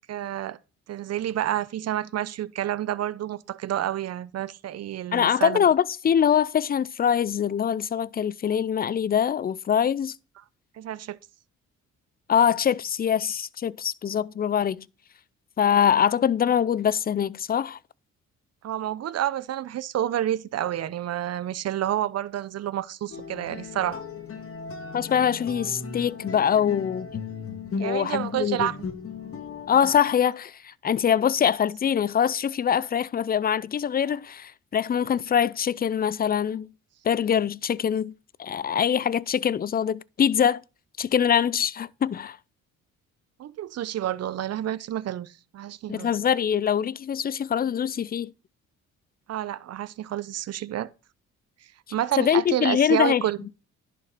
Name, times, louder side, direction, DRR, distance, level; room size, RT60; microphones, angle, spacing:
voice 1, 0.1-0.6 0.9-5.6 10.8-11.2 18.6-24.0 27.8-28.7 43.4-46.1 49.3-50.9 51.9-53.4, right 12 dB, 55° right, 0.7 m, -29 dB
voice 2, 5.1-10.2 12.3-14.9 15.6-17.8 24.9-27.1 27.8-28.7 29.7-36.7 37.0-38.1 38.4-40.6 41.0-42.4 45.9-48.3 52.2-53.2, left 8 dB, 30° left, 0.4 m, -23 dB
sound 1, 23.1-30.0, left 5 dB, 45° left, 1.9 m, -37 dB
11.0 x 6.2 x 4.1 m
cardioid pair, 90°, 30 cm